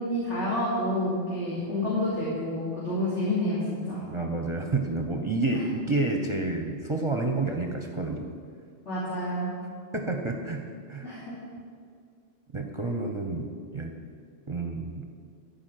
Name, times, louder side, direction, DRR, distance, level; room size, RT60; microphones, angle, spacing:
voice 1, 0.0-4.0 8.8-9.5 11.0-11.2, left 1 dB, 60° left, -10 dB, 3.3 m, -28 dB
voice 2, 4.1-8.3 9.9-11.2 12.5-13.9 14.5-15.1, right 2 dB, 25° right, 2 dB, 0.8 m, -29 dB
14.0 x 5.3 x 9.1 m, 2.2 s
omnidirectional pair, 1.3 m